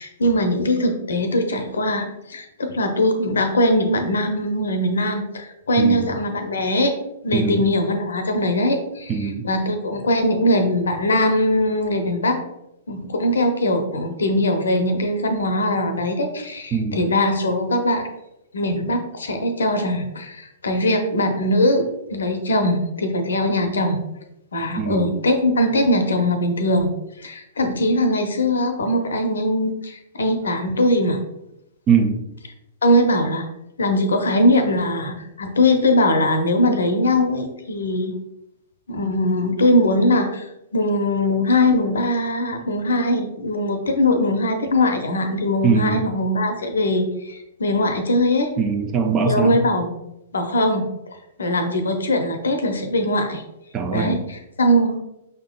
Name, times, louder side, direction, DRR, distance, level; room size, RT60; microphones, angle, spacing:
voice 1, 0.0-6.9 7.2-9.1 9.4-12.4 12.9-18.1 18.5-24.0 24.5-26.9 27.2-31.2 32.8-33.5 33.8-38.2 38.9-40.4 40.7-48.5 49.3-49.9 50.3-50.9 51.4-53.4 53.9-55.0, left 1 dB, 70° left, 6 dB, 0.6 m, -21 dB
voice 2, 5.8-6.1 7.3-7.6 9.1-9.4 16.7-17.0 24.8-25.1 31.9-32.2 45.6-46.0 48.6-49.6 53.7-54.2, right 5 dB, 25° right, 5 dB, 0.5 m, -21 dB
5.5 x 3.6 x 2.3 m, 0.85 s
figure-of-eight pair, 110°, 0 cm